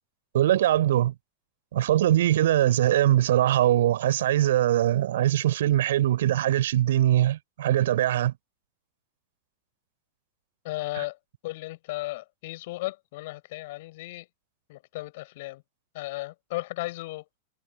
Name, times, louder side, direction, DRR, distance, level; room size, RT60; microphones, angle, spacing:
voice 1, 0.3-1.1 1.7-8.3 11.0-11.1, right 13 dB, 60° right, 4.1 m, -22 dB
voice 2, 10.6-11.2 11.4-14.3 14.7-15.6 15.9-17.3, left 19 dB, 50° left, 6.2 m, -35 dB
figure-of-eight pair, 90°, 0 cm